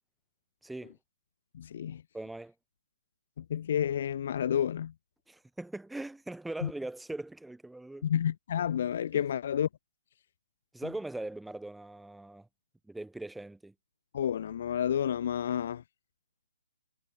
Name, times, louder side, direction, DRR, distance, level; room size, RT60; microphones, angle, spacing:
voice 1, 0.6-0.9 2.1-2.5 5.3-8.1 9.1-9.2 10.7-12.5 12.9-13.7, right 2 dB, 5° right, 4.2 m, -40 dB
voice 2, 1.5-2.0 3.4-4.9 6.6-6.7 8.0-9.7 14.1-15.8, left 9 dB, 50° left, 0.5 m, -30 dB
figure-of-eight pair, 140°, 0 cm